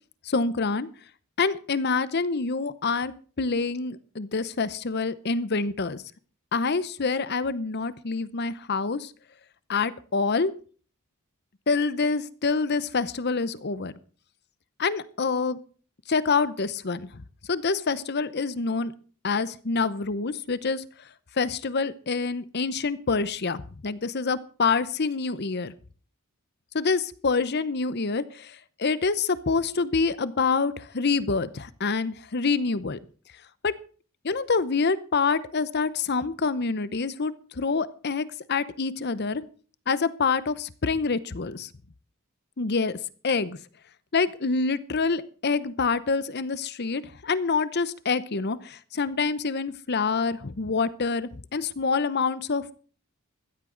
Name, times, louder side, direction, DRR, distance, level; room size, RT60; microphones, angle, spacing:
voice 1, 0.2-0.9 1.4-3.1 3.4-6.0 6.5-9.1 9.7-10.5 11.7-13.9 14.8-15.6 16.1-17.2 17.5-18.9 19.2-20.8 21.4-25.7 26.7-33.0 33.6-33.7 34.2-39.4 39.9-41.7 42.6-43.0 43.2-43.6 44.1-52.6, left 4 dB, 50° left, 16 dB, 0.8 m, -26 dB
15.5 x 13.5 x 3.9 m, 0.41 s
head